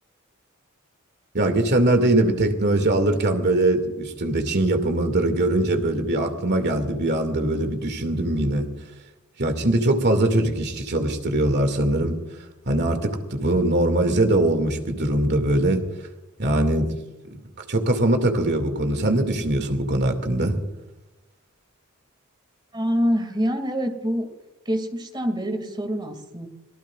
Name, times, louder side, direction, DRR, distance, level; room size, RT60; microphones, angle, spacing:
voice 1, 1.3-8.7 9.4-12.2 12.7-15.8 16.4-16.9 17.7-20.6, right 1 dB, 55° right, 6 dB, 2.4 m, -22 dB
voice 2, 22.7-24.3 24.7-26.5, equal, 20° right, 6 dB, 2.4 m, -25 dB
26.0 x 18.5 x 2.5 m, 1.0 s
head